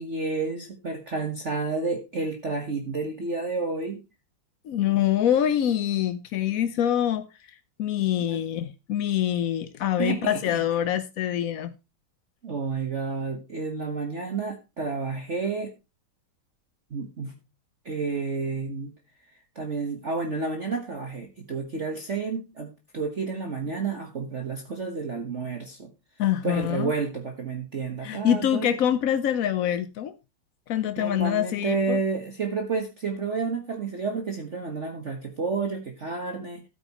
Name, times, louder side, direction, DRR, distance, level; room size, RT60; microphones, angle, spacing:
voice 1, 0.0-4.0 8.2-8.4 10.0-10.6 12.4-15.7 16.9-17.3 17.8-18.9 19.5-22.7 22.9-25.9 26.4-28.7 31.0-36.6, right 4 dB, 40° right, 1.4 m, -30 dB
voice 2, 4.6-11.7 26.2-26.9 28.0-30.1 30.7-32.0, left 10 dB, 70° left, 0.8 m, -25 dB
13.0 x 9.2 x 3.0 m
omnidirectional pair, 2.3 m